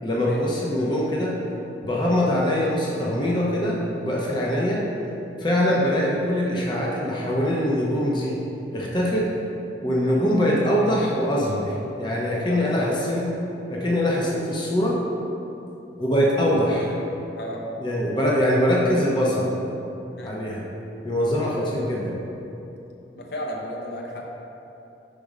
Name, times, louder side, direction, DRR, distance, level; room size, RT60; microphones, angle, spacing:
voice 1, 0.0-1.3 1.8-4.8 5.4-8.4 8.7-9.3 9.8-13.2 13.7-15.0 16.0-16.9 17.8-19.5 20.2-20.7 21.0-22.2, equal, 25° left, -4 dB, 0.7 m, -23 dB
voice 2, 12.5-12.9 17.4-17.6 20.2-20.4 23.1-24.3, equal, 60° left, -1 dB, 0.7 m, -34 dB
5.1 x 4.2 x 4.9 m, 2.9 s
head